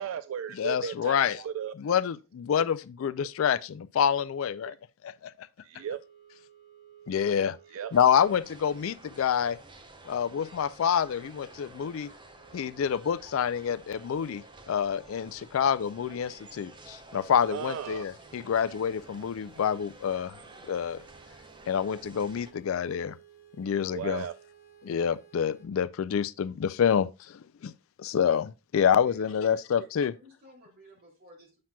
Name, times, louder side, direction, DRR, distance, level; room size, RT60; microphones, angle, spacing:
voice 1, 0.0-1.7 4.7-4.8 5.6-6.0 7.7-7.9 17.5-18.0 23.9-24.3, right 8 dB, 75° right, 0.3 m, -35 dB
voice 2, 0.6-1.4 1.8-4.7 5.0-5.5 7.1-7.6 7.9-9.6 10.1-12.1 12.5-20.3 20.7-21.0 21.7-23.2 23.6-24.2 24.8-27.7 28.0-30.1, left 8 dB, 75° left, 0.4 m, -27 dB
sound 1, 5.8-25.7, right 8 dB, 20° left, 3.3 m, -58 dB
sound 2, 7.9-22.5, right 2 dB, 25° right, 0.7 m, -52 dB
voice 3, 29.0-29.9 30.1-31.6, right 1 dB, 45° right, 2.7 m, -54 dB
7.6 x 5.8 x 2.2 m
head